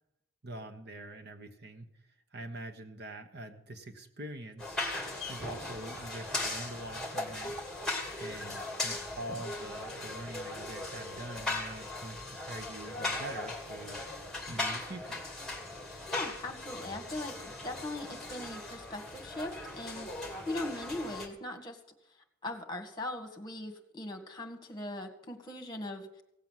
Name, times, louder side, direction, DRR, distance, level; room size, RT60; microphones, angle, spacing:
voice 1, 0.4-4.8 5.3-7.6 8.2-14.0 14.5-15.2, right 1 dB, 55° right, 7 dB, 1.3 m, -44 dB
sound 1, 4.6-21.3, left 2 dB, ahead, 2.5 m, -38 dB
voice 2, 16.1-21.8 22.4-26.2, left 1 dB, 20° left, 4 dB, 2.0 m, -40 dB
17.0 x 7.8 x 7.5 m, 0.79 s
head